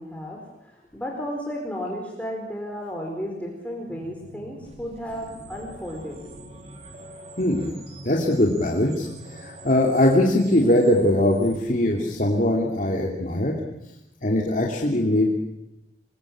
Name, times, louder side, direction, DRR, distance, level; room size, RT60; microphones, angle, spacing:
voice 1, 0.0-6.2, equal, 10° left, -1 dB, 4.6 m, -33 dB
sound 1, 3.9-12.2, right 1 dB, 35° right, 3.3 m, -44 dB
voice 2, 7.4-7.7 8.0-13.5 14.2-15.3, left 1 dB, 45° left, -1 dB, 2.9 m, -21 dB
27.0 x 21.5 x 8.8 m, 0.91 s
head